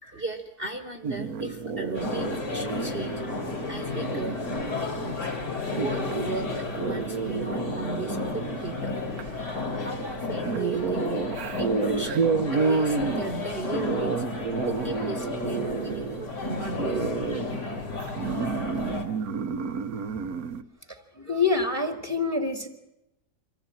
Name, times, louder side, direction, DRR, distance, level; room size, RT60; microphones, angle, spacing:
voice 1, 0.1-3.2 3.7-4.4 4.7-5.3 5.7-8.9 9.8-11.1 11.6-12.2 12.5-14.2 14.7-17.1, right 3 dB, 35° right, 5 dB, 1.6 m, -36 dB
sound 1, 1.0-20.6, right 5 dB, 60° right, 1.4 m, -31 dB
sound 2, 1.9-19.1, left 3 dB, 75° left, 4.0 m, -33 dB
voice 2, 20.9-22.7, left 4 dB, 10° left, 6 dB, 1.9 m, -27 dB
25.5 x 15.0 x 9.0 m, 0.90 s
omnidirectional pair, 1.8 m